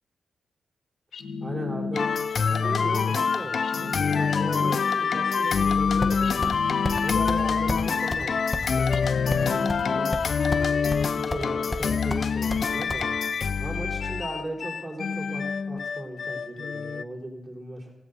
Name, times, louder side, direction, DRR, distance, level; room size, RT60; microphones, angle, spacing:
sound 1, 1.1-2.5 3.6-5.0 6.2-7.6 8.9-10.3, left 4 dB, 80° left, 1.0 m, -34 dB
voice 1, 1.4-2.1 2.5-6.5 7.0-8.3 8.7-9.0 9.5-10.1 11.1-13.1 13.6-17.9, right 1 dB, 20° right, -3 dB, 4.0 m, -37 dB
sound 2, 1.9-17.0, left 5 dB, 55° left, 0.3 m, -26 dB
sound 3, 6.0-6.6 6.8-7.0 7.3-7.4 7.7-7.8 8.1-8.2 8.5-9.8 10.1-10.7 10.9-11.5 11.7-13.0, left 1 dB, 20° left, 1.0 m, -31 dB
17.0 x 16.0 x 2.7 m, 1.0 s
cardioid pair, 100°, 0 cm